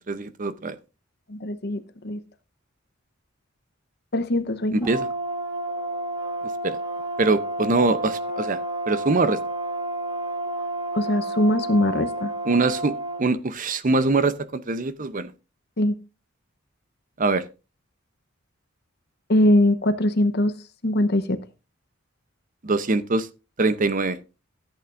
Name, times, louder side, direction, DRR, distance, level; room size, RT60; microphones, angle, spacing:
voice 1, 0.1-0.8 4.7-5.1 6.6-6.8 7.2-8.6 8.9-9.4 12.5-15.3 17.2-17.4 22.6-23.3 23.6-24.2, right 3 dB, 40° right, 0.7 m, -23 dB
voice 2, 1.3-2.2 4.1-4.8 10.9-12.3 15.8-15.9 19.3-20.5 20.8-21.4, left 1 dB, 55° left, 0.9 m, -21 dB
Brass instrument, 4.8-13.2, right 1 dB, 20° right, 1.5 m, -30 dB
14.0 x 8.4 x 2.5 m
head